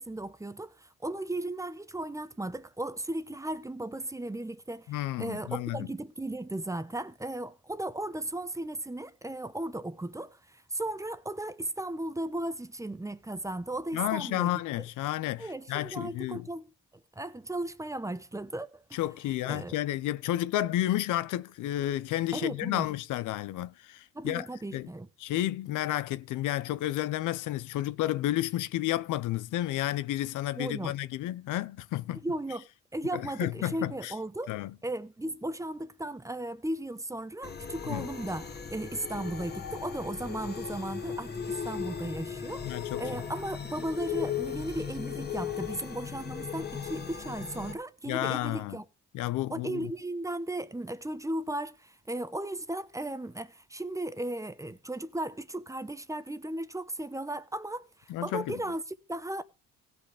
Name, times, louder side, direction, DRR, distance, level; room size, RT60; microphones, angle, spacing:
voice 1, 0.0-14.5 14.8-14.9 15.4-16.7 17.2-19.0 19.5-19.8 22.3-22.9 24.1-25.1 30.6-30.9 32.2-32.6 32.9-34.5 34.8-48.8 49.5-59.4, right 1 dB, 10° right, 0.9 m, -36 dB
voice 2, 4.9-5.9 13.9-16.5 18.9-24.5 24.7-24.9 25.2-32.2 33.1-34.1 34.5-34.7 37.8-38.1 42.6-43.0 48.1-48.8 49.1-49.9 58.1-58.6, left 14 dB, 85° left, 0.7 m, -31 dB
sound 1, 37.4-47.7, left 7 dB, 35° left, 1.9 m, -37 dB
16.5 x 5.8 x 5.0 m
cardioid pair, 90°, 30 cm